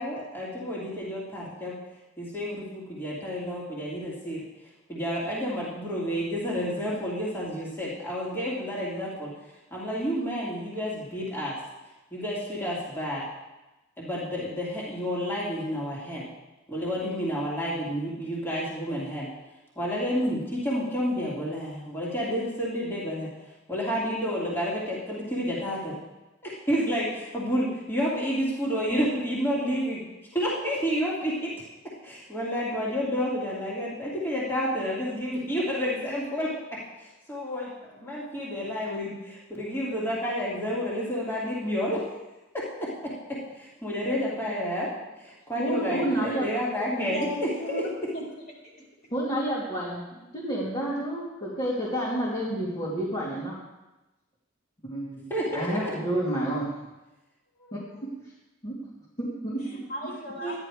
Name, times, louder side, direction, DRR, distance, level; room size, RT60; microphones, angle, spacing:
voice 1, 0.0-1.8 2.2-4.4 4.9-9.3 9.7-11.5 12.1-13.2 14.0-16.2 16.7-19.3 19.8-23.3 23.7-25.9 26.4-30.0 30.3-31.5 32.0-42.1 42.5-42.9 43.3-44.9 45.2-47.3 47.7-47.8 55.3-55.8 57.6-57.9 60.4-60.6, equal, 10° left, -7 dB, 2.6 m, -30 dB
voice 2, 45.6-46.5 49.1-53.5 54.8-56.7 57.7-58.1 58.6-58.7 59.2-59.6, right 1 dB, 30° left, -8 dB, 2.5 m, -30 dB
voice 3, 47.1-48.2 59.6-60.6, left 1 dB, 50° left, -3 dB, 4.0 m, -35 dB
13.0 x 10.5 x 4.9 m, 1.0 s
head